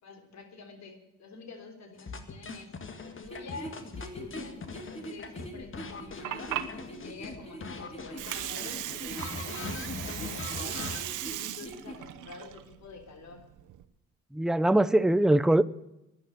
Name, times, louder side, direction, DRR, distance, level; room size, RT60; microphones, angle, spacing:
voice 1, 0.0-2.7 3.1-6.6 6.9-10.8 11.2-13.5, left 4 dB, 65° left, 6 dB, 3.5 m, -48 dB
sound 1, 2.0-7.4 7.6-11.0, left 4 dB, 40° left, 1.9 m, -41 dB
sound 2, 3.2-12.0, equal, 20° left, 3.5 m, -44 dB
Water, 5.9-13.8, right 14 dB, 90° right, 1.0 m, -38 dB
voice 2, 14.3-15.6, right 1 dB, ahead, 15 dB, 0.6 m, -22 dB
12.0 x 10.5 x 9.1 m, 0.89 s
cardioid pair, 90°, 30 cm